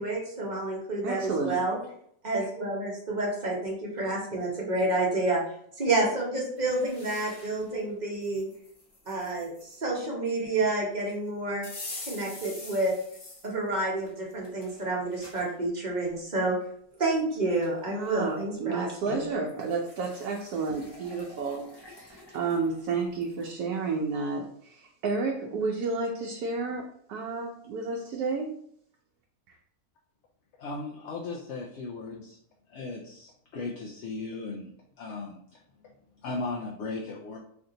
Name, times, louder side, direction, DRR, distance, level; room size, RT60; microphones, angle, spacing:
voice 1, 0.0-1.8 2.2-5.4 5.8-8.5 9.1-11.6 12.0-12.9 13.4-16.6 17.0-19.2, right 2 dB, 35° right, -3 dB, 0.9 m, -29 dB
voice 2, 1.0-1.6 17.9-28.6 29.5-29.6, right 4 dB, 85° right, 0 dB, 1.1 m, -31 dB
sound 1, 6.6-7.7 8.2-9.8 11.6-13.5 14.0-15.5 16.1-16.2 17.2-17.3 17.6-18.2 19.5-23.5, left 2 dB, 35° left, 0.4 m, -46 dB
voice 3, 30.6-32.4 32.7-34.7 35.0-37.4, left 3 dB, 65° left, -1 dB, 0.7 m, -37 dB
3.3 x 2.6 x 3.8 m, 0.67 s
omnidirectional pair, 1.6 m